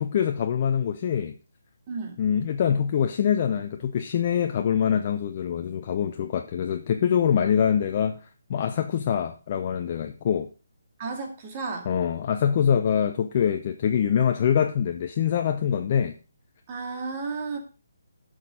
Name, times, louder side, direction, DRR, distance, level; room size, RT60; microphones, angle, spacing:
voice 1, 0.0-1.3 2.2-8.2 8.5-10.5 11.9-16.1, left 8 dB, 40° left, 0.7 m, -24 dB
voice 2, 1.9-2.2 11.0-11.9 16.7-17.6, right 4 dB, 30° right, 2.4 m, -33 dB
11.5 x 6.5 x 3.8 m
figure-of-eight pair, 145°, 0 cm